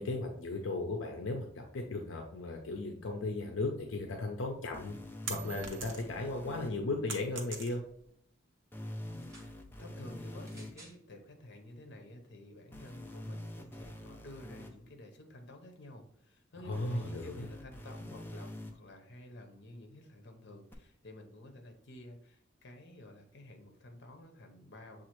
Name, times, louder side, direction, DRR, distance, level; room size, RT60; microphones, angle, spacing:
voice 1, 0.0-5.0 5.3-7.8 16.6-17.5, left 2 dB, 85° left, 3 dB, 0.5 m, -36 dB
sound 1, 4.7-6.7 8.7-10.7 12.7-14.7 16.7-18.7 20.7-20.8, left 1 dB, 10° left, 0.4 m, -45 dB
sound 2, 5.3-6.3 6.6-8.1, right 5 dB, 70° right, 0.8 m, -42 dB
voice 2, 9.1-25.1, left 1 dB, 60° left, 4 dB, 0.8 m, -51 dB
sound 3, 9.1-9.5 10.4-11.0 11.9-12.0, right 2 dB, 15° right, 0.9 m, -56 dB
6.9 x 2.4 x 3.0 m, 0.64 s
head